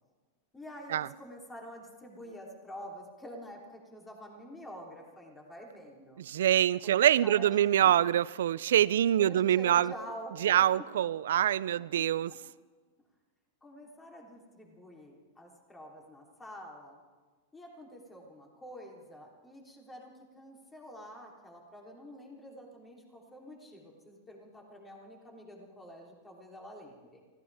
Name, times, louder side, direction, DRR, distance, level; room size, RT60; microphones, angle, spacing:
voice 1, 0.5-6.2 6.8-8.0 9.2-10.7 12.0-12.4 13.6-17.0 17.5-27.2, equal, 15° left, 3.5 m, -48 dB
voice 2, 6.3-9.9 10.4-12.3, right 11 dB, 80° right, 0.4 m, -25 dB
24.5 x 15.5 x 3.6 m
hypercardioid pair, 115°, 0 cm